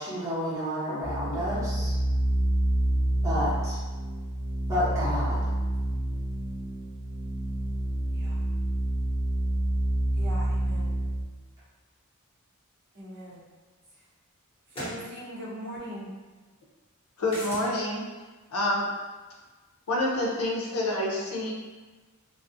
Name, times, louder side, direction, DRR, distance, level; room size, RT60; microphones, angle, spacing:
voice 1, 0.0-1.9 3.2-3.8 4.7-5.4, equal, 15° right, -11 dB, 0.9 m, -30 dB
sound 1, 1.0-11.2, right 1 dB, 35° right, 1.0 m, -28 dB
voice 2, 10.1-10.9 12.9-13.4 14.7-16.1, equal, 50° right, -6 dB, 0.6 m, -40 dB
sound 2, 13.3-13.4 14.7-15.0 17.3-17.7, equal, 25° left, 0.9 m, -37 dB
voice 3, 17.2-18.0 18.5-18.9 19.9-21.5, left 1 dB, 75° left, -2 dB, 0.5 m, -27 dB
2.3 x 2.0 x 2.6 m, 1.3 s
head